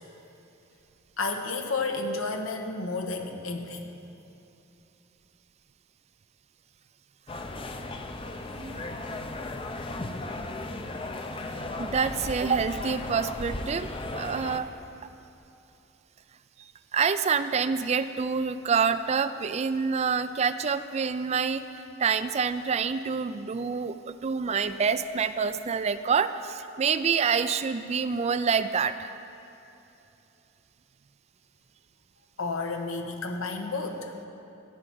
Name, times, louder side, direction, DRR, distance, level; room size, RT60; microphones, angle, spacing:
voice 1, 1.2-3.9 32.4-34.1, left 3 dB, 85° left, 4 dB, 1.2 m, -31 dB
sound 1, 7.3-14.6, left 2 dB, 25° left, 0.6 m, -36 dB
voice 2, 11.5-14.7 16.9-21.6 22.0-29.1, right 6 dB, 30° right, 12 dB, 0.3 m, -27 dB
13.5 x 5.7 x 8.8 m, 2.8 s
head